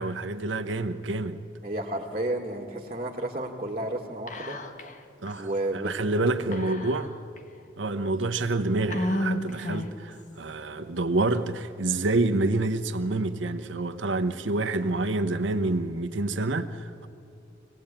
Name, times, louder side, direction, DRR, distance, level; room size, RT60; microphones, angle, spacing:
voice 1, 0.0-1.4 5.2-5.5 5.8-7.1 7.8-17.1, right 2 dB, 85° right, 1.0 m, -27 dB
voice 2, 1.6-4.6 5.4-5.9 6.4-6.8, right 1 dB, 35° right, 1.8 m, -32 dB
Whispering, 4.3-5.0 5.3-5.4 6.5-7.4 8.0-8.1 8.9-10.1, left 1 dB, 40° left, 1.4 m, -31 dB
25.0 x 18.5 x 8.8 m
head